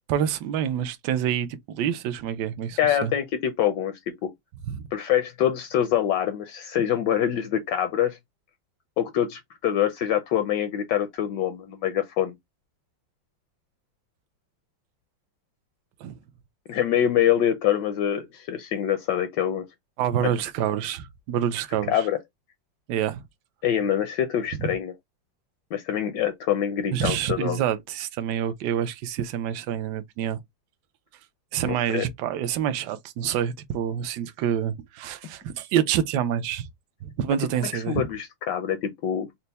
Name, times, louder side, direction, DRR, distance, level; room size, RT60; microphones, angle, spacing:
voice 1, 0.1-3.1 4.7-4.8 16.0-16.1 20.0-22.1 22.9-23.2 24.6-24.7 26.9-30.4 31.5-36.7 37.0-38.0, right 9 dB, 75° right, 1.1 m, -27 dB
voice 2, 2.8-4.3 4.9-8.2 9.0-12.3 16.7-19.7 20.2-20.3 21.9-22.2 23.6-24.9 25.7-27.6 31.6-32.0 37.7-39.3, left 10 dB, 75° left, 1.2 m, -25 dB
4.4 x 2.1 x 4.0 m
omnidirectional pair, 2.0 m